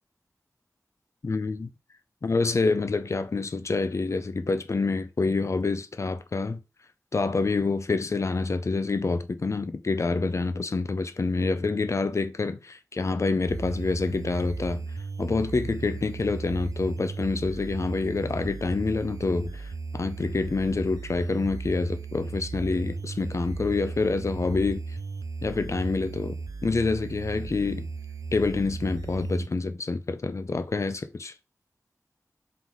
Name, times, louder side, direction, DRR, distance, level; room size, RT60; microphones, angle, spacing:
voice 1, 1.2-1.7 2.2-6.6 7.1-14.9 15.2-19.7 19.9-24.8 25.4-27.9 28.3-31.3, left 3 dB, 55° left, 0.5 m, -27 dB
sound 1, 13.5-29.5, right 4 dB, 70° right, 0.4 m, -36 dB
3.8 x 3.7 x 3.0 m
wide cardioid pair, 65°, 6 cm